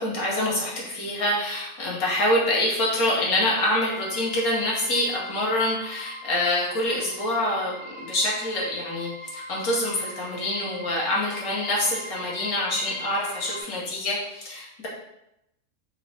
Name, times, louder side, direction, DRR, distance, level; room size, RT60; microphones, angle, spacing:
voice 1, 0.0-14.9, left 1 dB, 70° left, -4 dB, 1.5 m, -26 dB
sound 1, 3.7-13.6, left 1 dB, 30° left, 0.6 m, -41 dB
3.6 x 2.1 x 4.1 m, 0.84 s
omnidirectional pair, 1.6 m